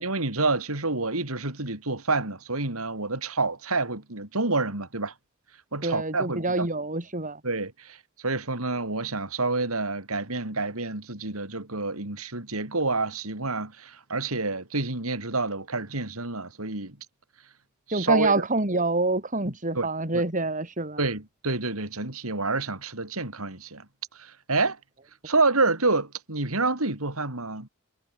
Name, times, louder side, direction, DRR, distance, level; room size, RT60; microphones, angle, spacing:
voice 1, 0.0-5.1 5.7-6.7 7.4-8.0 8.2-17.0 17.9-18.4 19.7-19.9 20.1-20.2 21.0-23.8 24.2-24.8 25.2-27.7, right 3 dB, 90° right, 4.4 m, -28 dB
voice 2, 5.8-7.4 17.9-21.0, right 2 dB, 40° right, 4.5 m, -26 dB
head